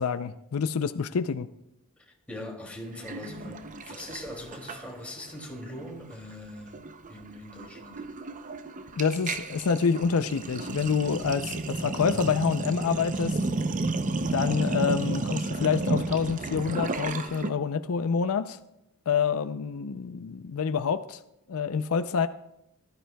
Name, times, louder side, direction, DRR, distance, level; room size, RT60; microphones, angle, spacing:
voice 1, 0.0-1.5 9.0-13.4 14.3-18.6 19.1-21.2 21.5-22.3, left 6 dB, 75° left, 11 dB, 0.5 m, -27 dB
voice 2, 2.3-6.8 7.1-8.1, left 1 dB, 5° left, -2 dB, 2.5 m, -41 dB
Sink (filling or washing), 3.0-5.3 5.5-5.8 6.1-17.5, right 3 dB, 35° right, 0.6 m, -32 dB
19.0 x 13.0 x 2.3 m, 0.85 s
head